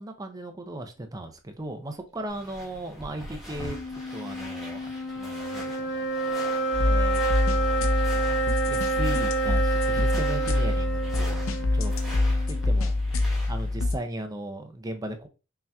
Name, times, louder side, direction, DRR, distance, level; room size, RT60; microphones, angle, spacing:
voice 1, 0.0-6.1 6.8-12.1 12.5-13.0 13.5-15.3, right 1 dB, 20° right, 0.5 m, -37 dB
sound 1, 2.3-13.8, left 1 dB, ahead, 1.0 m, -43 dB
sound 2, 3.5-13.0, right 2 dB, 60° left, 1.1 m, -29 dB
sound 3, 6.7-14.0, left 2 dB, 85° left, 0.6 m, -25 dB
5.6 x 2.8 x 2.2 m
head